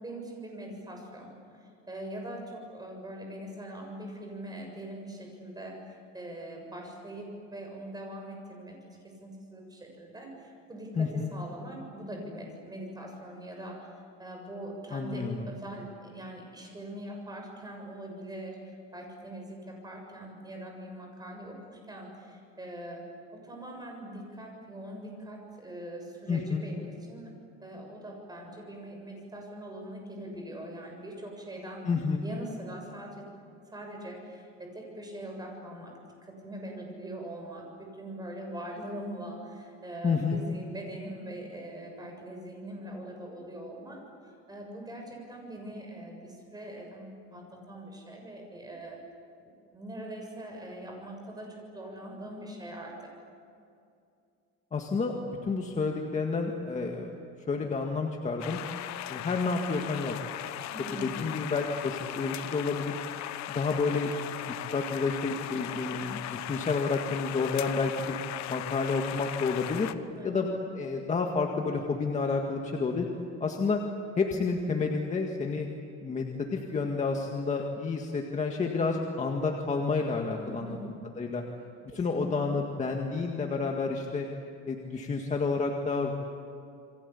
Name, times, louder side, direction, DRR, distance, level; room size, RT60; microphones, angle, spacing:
voice 1, 0.0-13.9 14.2-18.6 18.9-23.0 23.3-27.3 27.6-31.9 32.2-33.3 33.7-35.9 36.2-44.0 44.5-49.0 49.4-53.1 60.7-61.1 70.1-70.4 80.3-80.9 81.9-82.6, right 1 dB, 10° right, 2 dB, 7.0 m, -42 dB
voice 2, 11.0-11.3 14.9-15.5 26.3-26.6 31.9-32.2 40.0-40.4 54.7-57.1 57.5-58.6 59.1-60.2 61.0-63.0 63.5-64.1 64.7-68.2 68.5-69.9 70.2-70.5 70.7-73.1 73.4-73.8 74.2-75.7 76.0-80.8 81.2-81.4 81.9-84.3 84.7-86.1, left 4 dB, 20° left, 1 dB, 1.9 m, -30 dB
sound 1, 58.4-69.9, left 13 dB, 55° left, 1.2 m, -38 dB
29.0 x 23.5 x 8.6 m, 2.5 s
cardioid pair, 155°, 33 cm